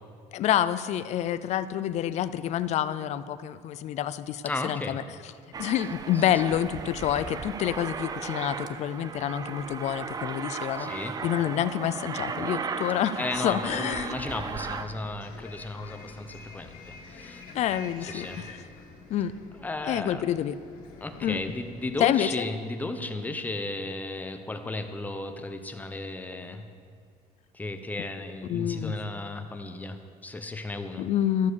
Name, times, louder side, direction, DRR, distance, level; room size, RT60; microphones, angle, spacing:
voice 1, 0.3-5.0 5.6-10.9 11.2-14.1 17.5-18.6 19.1-19.3 19.9-20.5 21.2-21.4 22.0-22.5 28.4-29.0 31.0-31.5, left 11 dB, 50° left, 14 dB, 0.5 m, -28 dB
voice 2, 4.4-5.0 6.1-6.4 10.8-11.2 13.2-17.4 18.0-18.5 19.6-20.2 21.0-26.7 27.5-31.1, left 2 dB, 10° left, 7 dB, 0.8 m, -34 dB
Aircraft, 5.5-14.8, right 5 dB, 25° right, 0.5 m, -36 dB
Bus, 13.3-22.0, left 4 dB, 75° left, 2.0 m, -48 dB
13.5 x 7.1 x 6.5 m, 2.2 s
cardioid pair, 145°, 15 cm